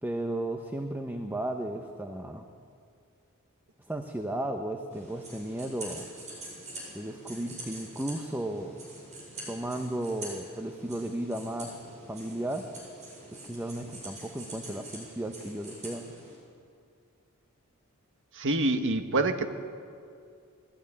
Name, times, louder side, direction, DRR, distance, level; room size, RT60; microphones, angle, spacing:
voice 1, 0.0-2.5 3.8-6.1 6.9-8.8 9.5-12.7 13.3-16.1, right 1 dB, 10° right, 5 dB, 1.0 m, -34 dB
sound 1, 4.9-16.3, right 2 dB, 35° right, 7.8 m, -45 dB
voice 2, 18.4-19.5, right 2 dB, 60° right, 7 dB, 1.5 m, -26 dB
21.5 x 16.5 x 9.9 m, 2.4 s
head